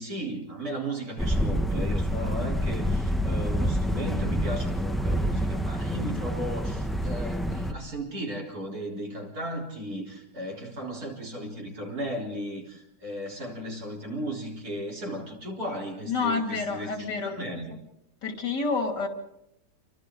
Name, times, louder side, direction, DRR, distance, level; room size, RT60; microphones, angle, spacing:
voice 1, 0.0-17.8, equal, 60° right, -1 dB, 4.5 m, -35 dB
sound 1, 1.2-7.7, equal, ahead, 0.7 m, -27 dB
voice 2, 16.1-17.4 18.2-19.1, left 4 dB, 90° left, 4 dB, 3.4 m, -28 dB
30.0 x 24.0 x 3.9 m, 0.84 s
omnidirectional pair, 1.8 m